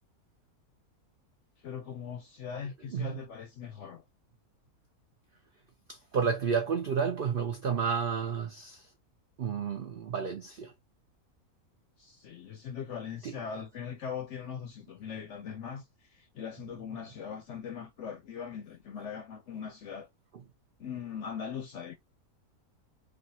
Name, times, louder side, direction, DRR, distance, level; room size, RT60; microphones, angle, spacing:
voice 1, 1.6-4.0 12.0-15.8 16.1-20.1 20.8-21.9, left 7 dB, 65° left, 0.8 m, -40 dB
voice 2, 5.9-8.9 9.4-10.7 13.2-13.4, right 6 dB, 75° right, 0.5 m, -31 dB
3.3 x 2.4 x 2.7 m
omnidirectional pair, 1.6 m